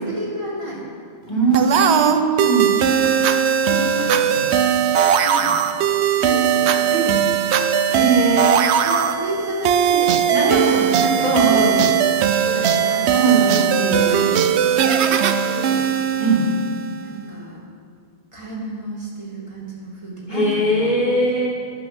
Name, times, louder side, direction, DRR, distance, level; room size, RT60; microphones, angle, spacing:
voice 1, 0.1-0.8 1.5-1.9 3.0-3.3 3.6-4.5 5.2-5.6 6.2-7.3 8.2-8.5 8.7-11.9 12.4-13.5 13.9-15.8 17.0-17.6 18.3-21.1, right 1 dB, 25° right, -5 dB, 2.5 m, -30 dB
voice 2, 1.3-2.8 7.9-8.7 10.3-10.6 11.2-11.8 13.1-14.3 16.2-16.5 20.3-21.5, right 2 dB, 40° left, -4 dB, 2.4 m, -20 dB
sound 1, 1.5-17.0, right 8 dB, 75° right, 0.8 m, -19 dB
13.0 x 6.1 x 6.1 m, 2.2 s
omnidirectional pair, 1.2 m